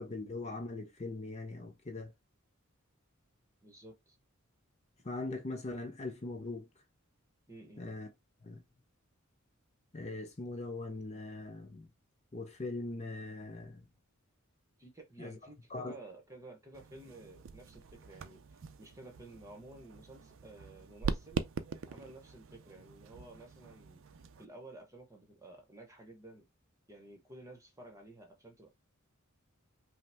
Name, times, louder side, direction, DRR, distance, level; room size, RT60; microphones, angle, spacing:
voice 1, 0.0-2.1 5.0-6.7 7.8-8.1 8.4-8.6 9.9-11.9 12.3-13.8 15.2-15.4 15.7-15.9, left 2 dB, 30° left, 0.6 m, -41 dB
voice 2, 3.6-4.2 7.5-7.8 14.8-21.4 21.9-24.0 24.4-26.5 26.9-28.7, right 2 dB, 15° right, 1.0 m, -53 dB
sound 1, 16.7-24.5, right 5 dB, 65° right, 0.4 m, -42 dB
5.4 x 2.1 x 3.4 m
head